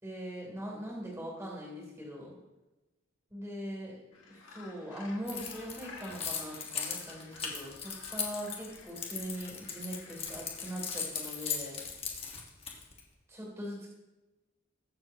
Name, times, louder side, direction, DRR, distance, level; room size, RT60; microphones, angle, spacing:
voice 1, 0.0-2.4 3.3-4.0 4.3-11.8 13.3-13.9, equal, 15° right, -4 dB, 3.1 m, -41 dB
Gull seagull, 4.1-10.8, left 3 dB, 75° left, 2.0 m, -53 dB
Keys jangling, 5.3-13.0, left 6 dB, 30° left, 1.4 m, -38 dB
21.0 x 7.5 x 2.9 m, 1.1 s
head